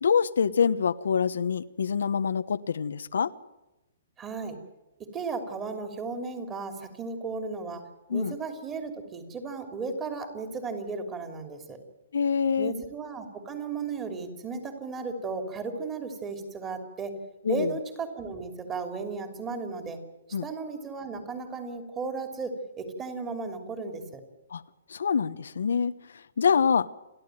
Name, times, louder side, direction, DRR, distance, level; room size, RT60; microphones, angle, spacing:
voice 1, 0.0-3.3 8.1-8.3 12.1-12.7 17.4-17.7 20.3-20.5 24.5-24.6 24.9-25.9 26.4-26.9, left 6 dB, 85° left, 11 dB, 1.1 m, -25 dB
voice 2, 4.2-4.6 5.0-7.8 8.1-11.8 12.6-17.2 17.5-20.0 20.4-24.2, right 4 dB, 15° right, 6 dB, 3.0 m, -35 dB
29.5 x 12.0 x 9.2 m, 0.99 s
hypercardioid pair, 165°, 0 cm